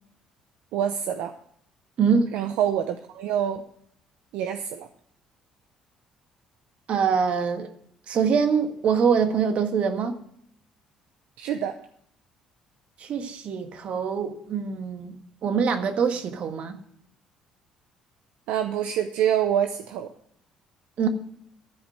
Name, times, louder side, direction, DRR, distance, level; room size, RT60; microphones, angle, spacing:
voice 1, 0.7-1.3 2.3-3.6 4.3-4.9 11.4-11.7 18.5-20.1, right 9 dB, 80° right, 7 dB, 0.6 m, -26 dB
voice 2, 2.0-2.3 6.9-7.7 8.1-10.2 13.0-15.2 15.4-16.8 21.0-21.1, right 6 dB, 60° right, 7 dB, 1.5 m, -24 dB
13.0 x 5.2 x 7.7 m, 0.68 s
supercardioid pair, 70°, 2 cm